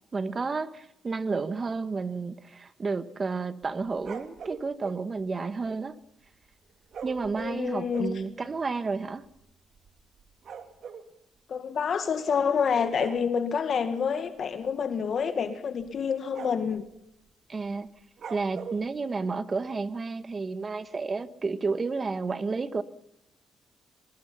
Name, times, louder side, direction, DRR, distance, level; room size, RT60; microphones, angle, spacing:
voice 1, 0.1-6.0 7.0-9.2 17.5-17.9 18.3-22.8, right 4 dB, 35° right, 1.5 m, -31 dB
sound 1, 3.6-5.0 6.9-8.2 8.9-9.0 9.2-9.4 9.7-11.1 12.2-12.5 12.9-13.2 14.6-14.8 15.2-15.3 15.8-16.0 16.3-16.8 18.2-18.8, right 6 dB, 60° right, 3.0 m, -41 dB
voice 2, 7.4-8.1 11.5-16.9, left 6 dB, 55° left, 1.9 m, -28 dB
22.5 x 21.5 x 5.7 m
cardioid pair, 105°, 0 cm